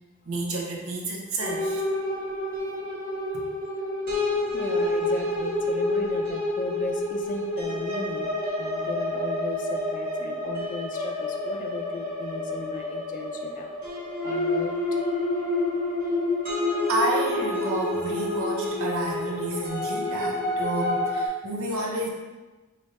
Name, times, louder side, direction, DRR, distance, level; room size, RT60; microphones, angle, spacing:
voice 1, 0.2-1.8 3.3-3.5 16.9-22.1, right 1 dB, 85° right, 0 dB, 0.7 m, -30 dB
sound 1, 1.4-21.3, left 1 dB, 45° right, 1.1 m, -28 dB
voice 2, 4.5-13.7 14.2-14.8, left 3 dB, 40° left, 4 dB, 0.4 m, -36 dB
3.3 x 2.6 x 4.0 m, 1.2 s
head